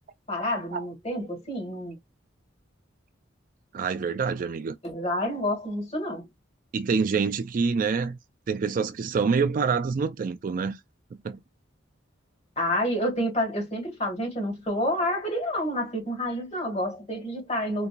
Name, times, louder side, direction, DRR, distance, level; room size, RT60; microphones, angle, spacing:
voice 1, 0.3-2.0 4.8-6.3 12.6-17.9, equal, 35° left, 1.8 m, -29 dB
voice 2, 3.7-4.8 6.7-8.2 8.5-10.8 11.1-11.4, right 5 dB, 45° right, 0.3 m, -26 dB
3.9 x 2.3 x 2.4 m
head